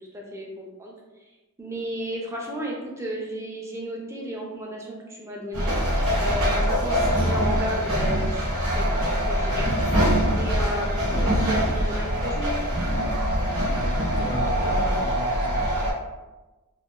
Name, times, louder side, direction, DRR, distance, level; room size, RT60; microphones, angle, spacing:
voice 1, 0.1-0.9 1.6-5.8 6.2-9.7 10.4-12.6, equal, 15° right, -2 dB, 0.4 m, -33 dB
sound 1, 5.5-15.9, equal, 75° right, 1.0 m, -23 dB
voice 2, 13.6-15.6, left 2 dB, 45° left, 2 dB, 0.4 m, -34 dB
2.9 x 2.2 x 2.2 m, 1.1 s
head